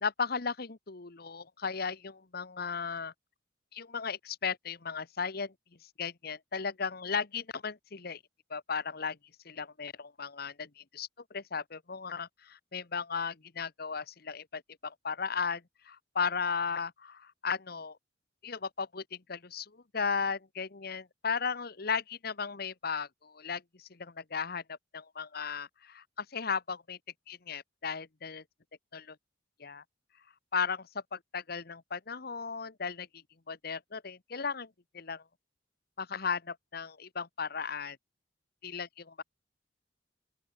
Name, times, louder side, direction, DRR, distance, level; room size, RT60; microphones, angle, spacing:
voice 1, 0.0-3.1 3.7-5.5 5.8-8.2 8.5-9.2 9.4-18.0 18.4-27.0 27.3-28.4 28.9-29.2 29.6-29.8 30.5-33.1 33.5-35.2 36.0-38.0 38.6-38.9, left 5 dB, 55° left, 1.2 m, -36 dB
open air
head